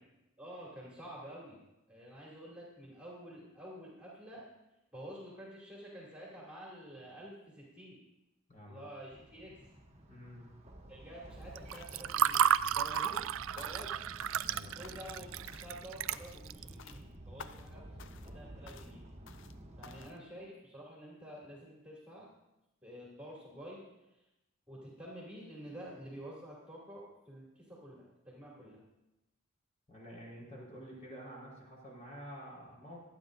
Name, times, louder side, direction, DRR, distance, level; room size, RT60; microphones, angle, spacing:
voice 1, 0.4-1.6 1.9-4.5 4.9-8.0 8.6-9.5 10.9-13.3 13.5-14.0 14.7-17.8 18.2-19.0 19.8-22.3 22.8-23.8 24.7-28.8, equal, 5° right, -5 dB, 2.7 m, -49 dB
voice 2, 8.5-8.8 10.1-10.5 14.4-14.9 29.9-33.0, equal, 35° left, -4 dB, 4.4 m, -49 dB
sound 1, 9.1-20.1, right 1 dB, 30° right, 1.3 m, -52 dB
Water / Fill (with liquid), 11.6-16.7, right 9 dB, 65° right, 0.3 m, -32 dB
sound 2, 11.7-12.1 12.3-13.3 13.6-14.0 14.2-14.6 14.8-15.2 15.5-15.8 16.1-16.5 16.8-17.0 17.4-17.7 18.0-18.4 18.7-18.9 19.3-19.6 19.8-20.2, left 6 dB, 60° left, 0.5 m, -53 dB
24.0 x 9.2 x 2.6 m, 0.93 s
head